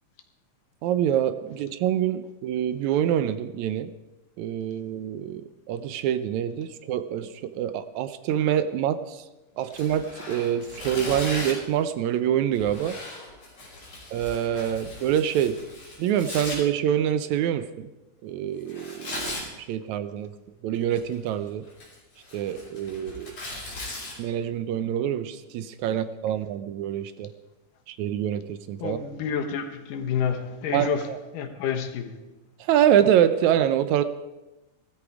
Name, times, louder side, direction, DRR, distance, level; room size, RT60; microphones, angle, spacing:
voice 1, 0.8-3.9 4.4-9.2 9.6-13.0 14.1-15.6 16.0-17.9 18.2-20.3 20.6-21.6 22.3-23.7 24.2-27.3 27.9-29.0 30.7-31.2 32.6-34.0, right 10 dB, 75° right, 1.8 m, -26 dB
Tearing, 9.7-11.7 12.5-16.6 18.7-19.5 20.7-21.3 21.7-24.1, left 2 dB, 50° left, 5.7 m, -38 dB
voice 2, 28.8-32.2, left 7 dB, 85° left, 2.8 m, -29 dB
16.5 x 13.5 x 4.8 m
omnidirectional pair, 3.7 m